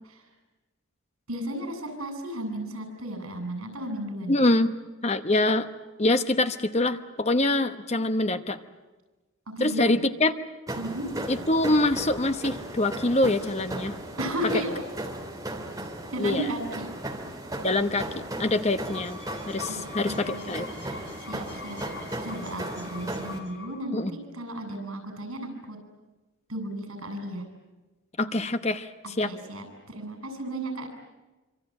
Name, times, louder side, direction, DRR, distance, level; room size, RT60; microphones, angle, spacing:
voice 1, 1.3-4.4 9.6-9.9 10.8-11.1 14.2-14.8 16.1-16.9 19.7-19.8 20.1-21.8 22.2-25.8 26.5-27.5 29.2-30.9, right 1 dB, 85° right, 6 dB, 7.4 m, -34 dB
voice 2, 4.3-4.7 5.0-5.7 6.0-8.6 9.6-10.3 11.3-14.0 16.2-16.5 17.6-19.2 19.5-20.7 23.9-24.1 28.2-29.3, left 2 dB, 30° left, 10 dB, 1.0 m, -25 dB
sound 1, 10.7-23.4, right 1 dB, 15° right, 3.0 m, -36 dB
sound 2, 18.6-24.0, left 5 dB, 55° left, 3.8 m, -43 dB
26.0 x 25.5 x 8.9 m, 1.2 s
head